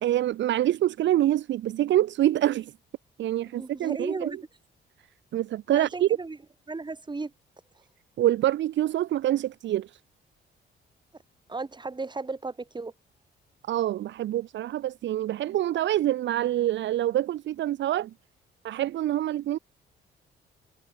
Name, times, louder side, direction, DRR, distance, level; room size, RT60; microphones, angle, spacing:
voice 1, 0.0-2.7 3.2-4.3 5.3-6.1 8.2-9.9 13.7-18.1 18.6-19.6, right 13 dB, 65° right, 0.7 m, -26 dB
voice 2, 3.5-4.4 5.7-6.4 6.7-7.3 11.5-12.9, right 3 dB, 20° right, 3.7 m, -35 dB
cardioid pair, 90°, 20 cm